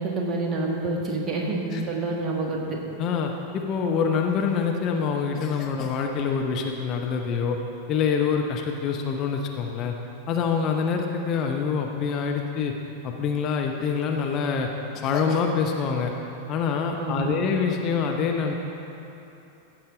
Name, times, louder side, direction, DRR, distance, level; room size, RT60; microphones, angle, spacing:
voice 1, 0.0-2.8 17.0-17.3, right 2 dB, 25° right, -1 dB, 1.6 m, -28 dB
voice 2, 3.0-7.6 7.9-9.9 10.3-12.7 13.0-14.7 14.9-16.1 16.5-18.5, left 6 dB, 35° left, 2 dB, 0.7 m, -25 dB
15.5 x 7.2 x 3.8 m, 2.9 s
figure-of-eight pair, 90°, 0 cm